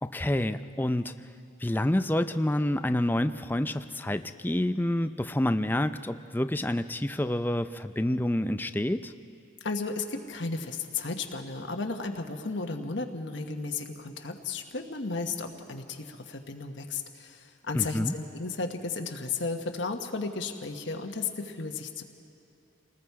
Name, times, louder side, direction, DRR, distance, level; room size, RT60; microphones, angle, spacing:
voice 1, 0.0-1.1 1.6-9.1 17.7-18.1, left 1 dB, 10° left, 10 dB, 0.4 m, -28 dB
voice 2, 9.6-22.0, left 4 dB, 70° left, 4 dB, 1.2 m, -34 dB
29.0 x 20.0 x 4.7 m, 2.6 s
head